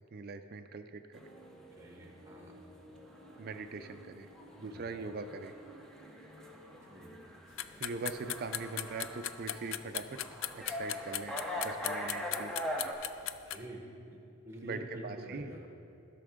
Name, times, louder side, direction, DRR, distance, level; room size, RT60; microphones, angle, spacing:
voice 1, 0.1-1.3 3.4-4.3 4.6-5.5 7.8-10.2 10.5-12.6 14.6-15.7, right 4 dB, 45° right, 8 dB, 0.4 m, -42 dB
sound 1, 1.1-12.9, equal, 5° left, 0.7 m, -43 dB
sound 2, 1.2-7.3, equal, 80° left, 1.7 m, -56 dB
voice 2, 1.8-2.6 4.6-4.9 6.9-7.2 13.2-13.8 14.1-14.2 14.4-15.7, right 1 dB, 15° right, -1 dB, 1.2 m, -47 dB
sound 3, 7.6-13.6, left 12 dB, 65° left, 0.3 m, -37 dB
15.5 x 5.9 x 3.6 m, 2.6 s
head